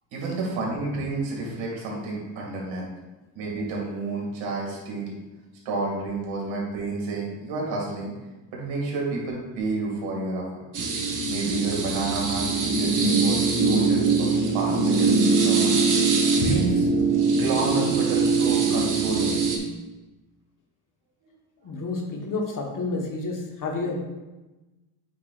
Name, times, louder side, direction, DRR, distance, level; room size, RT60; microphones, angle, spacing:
voice 1, 0.1-2.8 3.4-5.2 5.6-8.1 8.5-10.5 11.3-15.7 16.3-16.9 17.4-19.5, right 3 dB, 75° right, -2 dB, 2.4 m, -30 dB
sound 1, 10.7-19.6, right 4 dB, 40° right, 1.2 m, -22 dB
voice 2, 21.6-24.0, left 3 dB, 45° left, 1 dB, 1.3 m, -30 dB
8.5 x 5.8 x 2.5 m, 1.1 s
cardioid pair, 105°, 46 cm